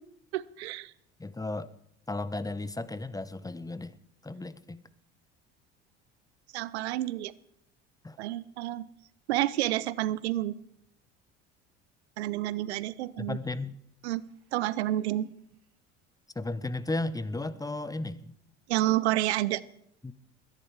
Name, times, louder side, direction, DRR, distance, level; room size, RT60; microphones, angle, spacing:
voice 1, 0.3-0.9 6.5-7.3 8.2-8.9 9.3-10.5 12.2-13.4 14.0-14.2 14.5-15.3 18.7-19.6, right 15 dB, 85° right, 20 dB, 0.7 m, -29 dB
voice 2, 1.2-1.7 2.1-4.0 4.2-4.8 8.0-8.2 13.2-13.8 16.3-18.3 20.0-20.1, left 2 dB, 10° left, 15 dB, 0.9 m, -34 dB
21.5 x 10.5 x 4.8 m, 0.70 s
hypercardioid pair, 75°, 32 cm